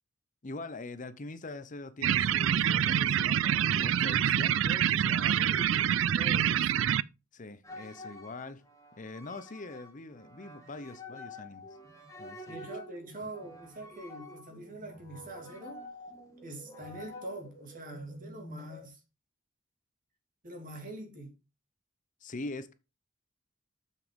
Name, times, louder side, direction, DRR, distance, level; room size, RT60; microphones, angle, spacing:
voice 1, 0.4-5.9 7.3-8.6 9.0-11.7 12.2-12.7 22.2-22.7, left 2 dB, 40° left, 0.7 m, -43 dB
sound 1, 2.0-7.0, right 9 dB, 70° right, 0.4 m, -26 dB
voice 2, 6.1-7.0 12.5-15.8 16.4-19.0 20.4-21.4, right 1 dB, 45° right, 2.6 m, -44 dB
sound 2, 7.6-18.9, left 1 dB, 15° left, 2.0 m, -48 dB
7.2 x 6.5 x 5.1 m
head